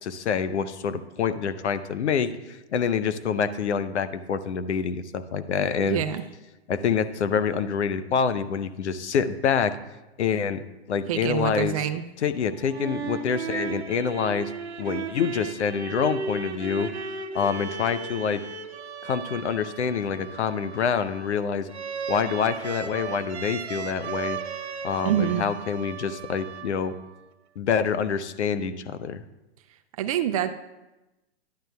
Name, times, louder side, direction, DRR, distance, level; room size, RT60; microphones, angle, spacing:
voice 1, 0.0-6.0 6.7-9.8 10.2-11.9 12.2-14.5 14.8-16.9 17.3-18.4 19.0-21.7 22.1-24.4 24.8-27.0 27.6-29.2, left 7 dB, 85° left, 13 dB, 0.6 m, -26 dB
voice 2, 5.8-6.2 11.1-12.0 25.0-25.4 30.0-30.5, right 10 dB, 35° right, 9 dB, 0.4 m, -26 dB
sound 1, 12.5-27.1, right 6 dB, 75° right, 0.8 m, -35 dB
11.5 x 10.5 x 2.2 m, 1.0 s
hypercardioid pair, 130°, 33 cm